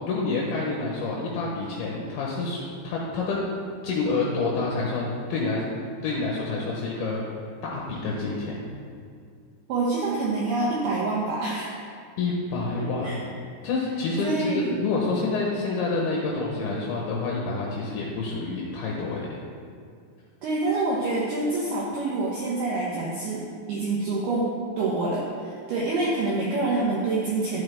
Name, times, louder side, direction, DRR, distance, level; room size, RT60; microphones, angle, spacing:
voice 1, 0.0-3.4 3.8-5.6 6.0-7.2 7.6-8.6 12.2-13.3 13.6-19.3, left 3 dB, 75° left, -3 dB, 2.4 m, -28 dB
voice 2, 9.7-11.8 12.8-13.2 14.2-14.7 20.4-27.6, right 3 dB, 75° right, -5 dB, 2.3 m, -27 dB
11.5 x 7.8 x 3.5 m, 2.2 s
omnidirectional pair, 5.9 m